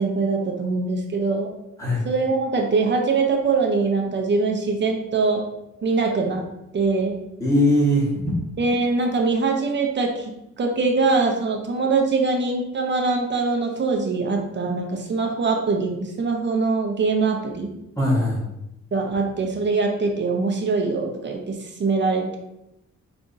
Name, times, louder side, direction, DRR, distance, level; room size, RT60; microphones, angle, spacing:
voice 1, 0.0-1.5 2.0-5.4 5.8-6.4 6.7-7.2 8.6-10.3 10.6-17.7 18.9-22.4, right 4 dB, 40° right, 2 dB, 0.7 m, -23 dB
voice 2, 7.4-8.2 18.0-18.5, equal, 10° left, -5 dB, 1.3 m, -20 dB
4.9 x 3.4 x 2.6 m, 0.85 s
wide cardioid pair, 145°, 30 cm